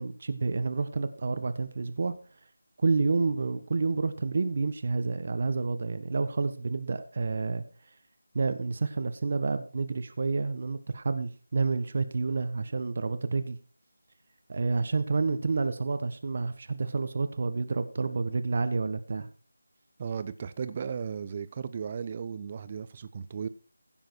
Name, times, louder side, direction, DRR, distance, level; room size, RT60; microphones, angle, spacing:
voice 1, 0.0-2.1 2.8-7.6 8.3-13.6 14.5-19.3, right 4 dB, 45° right, 1.4 m, -29 dB
voice 2, 20.0-23.5, right 6 dB, 30° right, 0.9 m, -35 dB
16.0 x 7.3 x 4.6 m
figure-of-eight pair, 165°, 0 cm